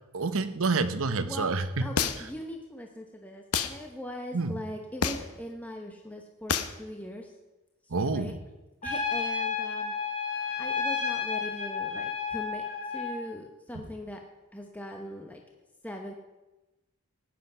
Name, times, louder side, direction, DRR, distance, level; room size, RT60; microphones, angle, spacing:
voice 1, 0.1-1.9 4.3-4.5 7.9-8.4, right 3 dB, 65° right, 10 dB, 0.9 m, -28 dB
voice 2, 1.2-1.5 1.8-7.3 7.8-8.3 8.8-9.9 10.5-14.2 14.5-15.4 15.8-16.1, left 1 dB, 5° left, 2 dB, 1.0 m, -41 dB
sound 1, 2.0-2.4 3.5-3.8 5.0-5.4 6.5-6.8, left 6 dB, 85° left, 0.9 m, -28 dB
Trumpet, 8.8-13.2, left 5 dB, 35° left, 6.4 m, -31 dB
16.5 x 10.5 x 5.5 m, 1.1 s
head